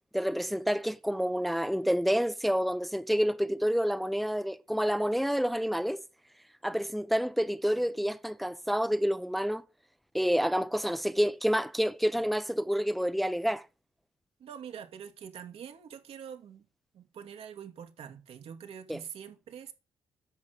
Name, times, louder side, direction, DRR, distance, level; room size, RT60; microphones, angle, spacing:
voice 1, 0.1-6.0 6.6-9.6 10.1-13.6 18.9-19.0, equal, ahead, 0.8 m, -28 dB
voice 2, 14.4-16.6 16.9-19.7, right 8 dB, 70° right, 2.5 m, -45 dB
10.5 x 6.5 x 8.0 m
supercardioid pair, 55°, 10 cm